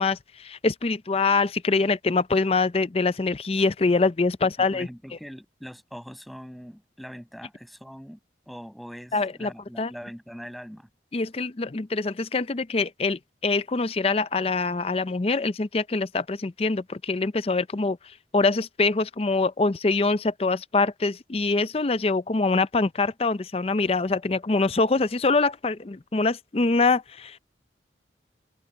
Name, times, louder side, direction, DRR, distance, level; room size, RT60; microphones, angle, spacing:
voice 1, 0.0-4.9 9.1-9.5 9.8-9.9 11.1-18.0 18.3-27.4, left 3 dB, 30° left, 0.5 m, -24 dB
voice 2, 4.4-8.2 8.5-10.9, equal, ahead, 7.1 m, -42 dB
open air
head